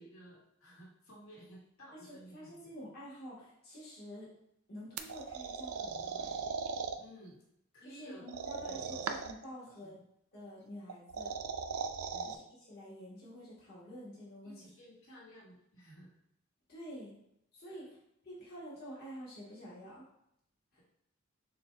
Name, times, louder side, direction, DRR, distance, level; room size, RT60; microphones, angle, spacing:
voice 1, 0.0-2.7 7.0-7.4 7.7-9.1 9.7-10.1 12.1-12.4 14.4-16.1 17.7-17.8, right 1 dB, 80° left, -5 dB, 1.7 m, -55 dB
voice 2, 2.0-4.3 4.7-6.4 7.8-9.9 10.3-11.3 12.2-14.6 16.7-17.1 17.5-18.0 18.2-20.0 20.7-20.8, equal, 45° left, -8 dB, 1.5 m, -48 dB
sound 1, 5.0-7.0 8.3-9.4 10.9-12.4, right 5 dB, 80° right, 0.4 m, -38 dB
6.6 x 2.4 x 3.3 m, 0.76 s
head